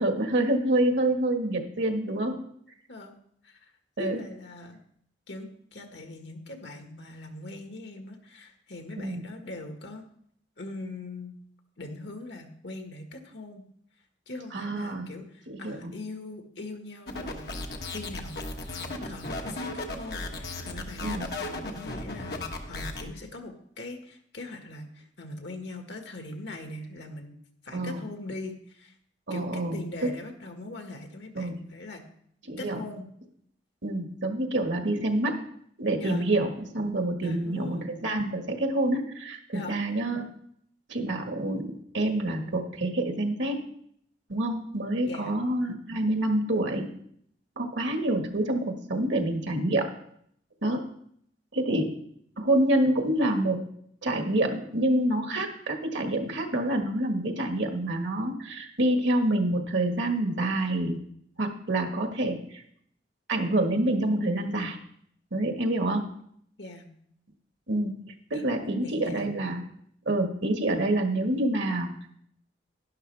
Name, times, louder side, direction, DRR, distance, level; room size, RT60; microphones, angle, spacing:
voice 1, 0.0-2.3 4.0-4.2 9.0-9.2 14.5-15.1 15.5-15.8 21.0-21.2 27.7-28.0 29.3-30.1 31.3-31.6 32.5-32.8 33.8-35.4 35.8-40.3 40.9-43.7 44.3-46.9 47.6-49.9 50.6-50.8 51.5-52.0 52.4-53.6 54.0-61.0 61.4-62.6 63.3-64.8 65.3-66.1 67.7-67.9 68.3-69.6 70.0-71.9, right 1 dB, 85° right, 4 dB, 1.6 m, -27 dB
voice 2, 4.0-4.8 5.3-10.0 10.6-11.3 11.8-13.6 14.3-17.5 17.8-27.3 27.6-29.0 29.3-32.1 32.6-33.1 36.0-36.2 37.2-37.8 39.5-39.8 45.0-45.4 66.6-66.9 68.3-69.3, left 2 dB, 75° left, 4 dB, 1.7 m, -41 dB
sound 1, 17.1-23.0, left 2 dB, 60° left, 1.2 m, -36 dB
11.5 x 11.0 x 3.4 m, 0.67 s
head